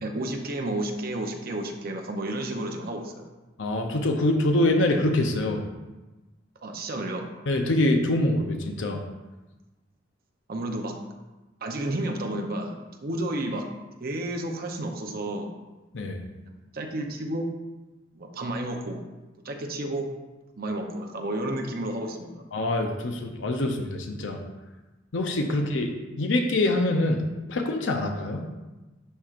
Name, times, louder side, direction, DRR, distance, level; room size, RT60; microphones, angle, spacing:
voice 1, 0.0-3.3 6.6-7.3 10.5-10.9 11.6-12.7 13.0-13.6 14.0-15.5 16.7-17.5 18.1-19.0 19.4-20.1 20.6-22.4 25.5-25.6, right 1 dB, 55° right, 3 dB, 0.7 m, -31 dB
voice 2, 3.6-5.6 7.5-9.0 15.9-16.2 22.5-24.4 25.1-25.9 26.2-27.2 27.5-28.5, left 1 dB, 80° left, 4 dB, 0.7 m, -25 dB
11.0 x 4.4 x 2.5 m, 1.1 s
head